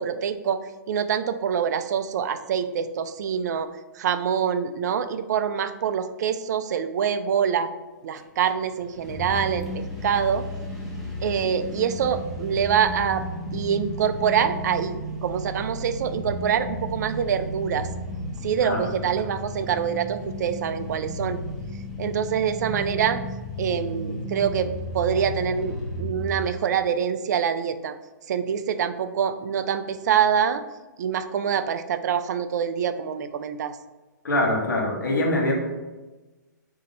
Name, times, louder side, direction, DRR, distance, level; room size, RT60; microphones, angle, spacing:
voice 1, 0.0-3.7 4.0-7.7 8.0-10.4 11.2-13.2 13.5-17.9 18.4-21.4 22.0-23.2 23.6-24.7 24.9-27.9 28.3-30.6 31.0-33.8, right 8 dB, 60° right, 11 dB, 0.4 m, -25 dB
sound 1, 8.2-8.3 8.4-26.4, left 1 dB, ahead, 0.8 m, -34 dB
voice 2, 34.2-35.6, left 1 dB, 85° left, 0 dB, 1.1 m, -23 dB
4.0 x 2.8 x 3.8 m, 1.2 s
hypercardioid pair, 130°, 10 cm